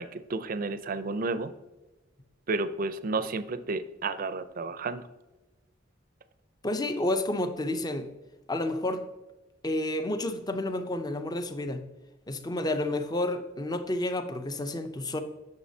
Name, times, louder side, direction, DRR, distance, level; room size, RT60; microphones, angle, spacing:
voice 1, 0.0-1.5 2.5-5.0, right 3 dB, 50° right, 13 dB, 0.5 m, -31 dB
voice 2, 6.6-8.1 8.5-9.1 9.6-11.9 12.3-15.2, left 1 dB, 20° left, 9 dB, 0.5 m, -30 dB
9.3 x 6.4 x 2.7 m, 1.1 s
head